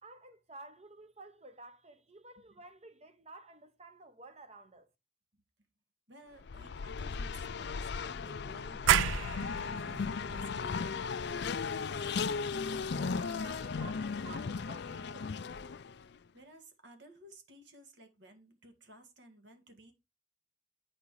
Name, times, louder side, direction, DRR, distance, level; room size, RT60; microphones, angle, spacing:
voice 1, 0.0-4.9 13.2-15.4, right 2 dB, 35° right, 0.9 m, -52 dB
voice 2, 6.1-11.8 16.0-19.9, right 1 dB, 65° right, 2.0 m, -57 dB
Race car auto racing, 6.4-16.0, left 5 dB, 60° left, 0.4 m, -36 dB
sound 1, 8.9-15.4, left 4 dB, 75° left, 0.8 m, -49 dB
sound 2, 8.9-14.3, right 11 dB, 80° right, 0.3 m, -34 dB
8.5 x 5.0 x 4.8 m
head